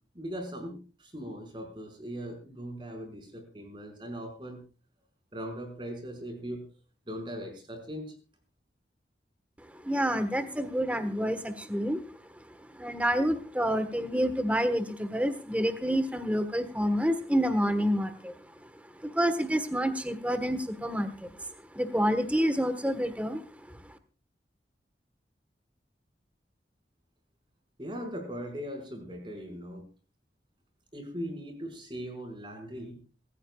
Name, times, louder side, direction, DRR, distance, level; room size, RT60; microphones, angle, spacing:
voice 1, 0.2-4.6 5.3-6.6 7.1-8.1 27.8-29.8 30.9-33.0, equal, 25° right, 4 dB, 5.3 m, -39 dB
voice 2, 9.7-12.0 12.6-18.7 18.9-21.4 21.7-24.0, equal, 10° right, 10 dB, 1.3 m, -28 dB
27.0 x 15.0 x 2.4 m, 0.34 s
head